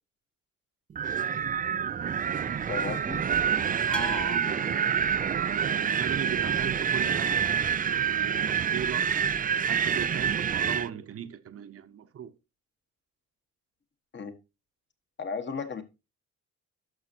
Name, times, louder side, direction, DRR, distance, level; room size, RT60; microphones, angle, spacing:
Wind, 1.0-10.9, right 8 dB, 30° right, 0.4 m, -27 dB
voice 1, 2.7-3.2 14.1-14.4 15.2-15.8, left 5 dB, 40° left, 1.4 m, -34 dB
voice 2, 3.8-4.9 5.3-9.1 9.7-12.3, right 9 dB, 50° right, 0.9 m, -38 dB
sound 1, 3.9-6.2, left 3 dB, 5° left, 0.7 m, -40 dB
11.5 x 6.2 x 2.8 m
cardioid pair, 90°, 30 cm